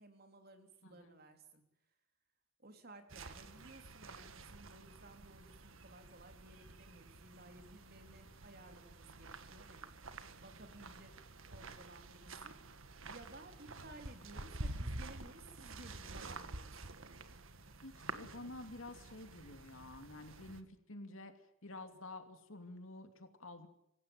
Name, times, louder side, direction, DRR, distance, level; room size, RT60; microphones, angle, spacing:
voice 1, 0.0-1.6 2.6-9.9 10.4-11.2 11.5-12.6 13.1-16.7, right 2 dB, 45° right, 6 dB, 3.4 m, -57 dB
sound 1, 3.1-20.6, right 2 dB, 70° right, 1.7 m, -49 dB
voice 2, 17.8-21.3 21.6-23.7, left 2 dB, 70° left, 6 dB, 3.0 m, -50 dB
26.5 x 16.5 x 7.9 m, 0.80 s
head